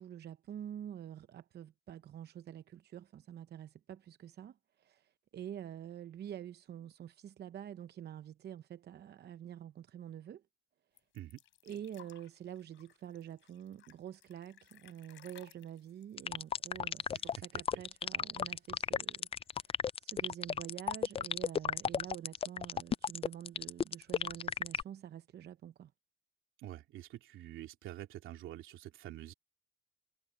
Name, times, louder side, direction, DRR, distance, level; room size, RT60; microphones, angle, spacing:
voice 1, 0.0-10.4 11.6-19.7 20.0-25.9, right 10 dB, 55° right, 0.7 m, -47 dB
sound 1, 11.0-17.4 17.7-17.8 18.1-18.8 19.6-19.7, left 12 dB, 80° left, 3.8 m, -61 dB
sound 2, 16.2-24.8, left 7 dB, 30° left, 0.4 m, -33 dB
voice 2, 26.6-29.3, right 13 dB, 85° right, 2.9 m, -47 dB
cardioid pair, 90°, 20 cm